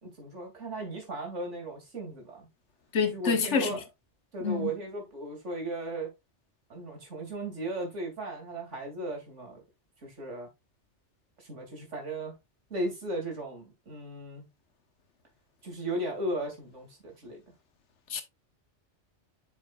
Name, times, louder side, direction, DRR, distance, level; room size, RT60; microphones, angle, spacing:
voice 1, 0.0-2.5 3.1-3.8 4.3-6.1 6.7-9.6 10.0-10.5 11.4-12.4 12.7-14.5 15.6-17.4, right 1 dB, 80° right, 3.0 m, -36 dB
voice 2, 2.9-3.8 4.4-4.7 18.1-18.2, left 5 dB, 75° left, 1.4 m, -27 dB
7.5 x 6.3 x 2.4 m
omnidirectional pair, 1.2 m